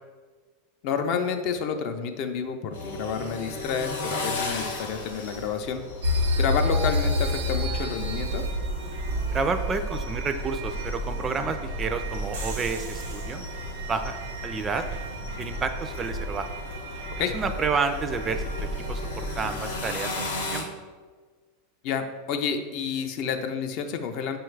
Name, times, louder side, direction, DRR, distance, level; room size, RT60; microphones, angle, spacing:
voice 1, 0.8-5.8 6.4-8.4 17.2-17.3 21.8-24.4, left 6 dB, 55° left, 6 dB, 0.4 m, -29 dB
sound 1, 2.7-20.6, left 3 dB, 85° left, 0.7 m, -37 dB
sound 2, 6.0-20.0, equal, 80° right, 0.9 m, -30 dB
voice 2, 9.3-13.4 13.9-14.1 14.4-14.8 15.4-16.5 17.3-18.4 18.9-20.7, right 4 dB, 25° right, 8 dB, 0.3 m, -30 dB
5.7 x 2.3 x 3.2 m, 1.4 s
hypercardioid pair, 105°, 0 cm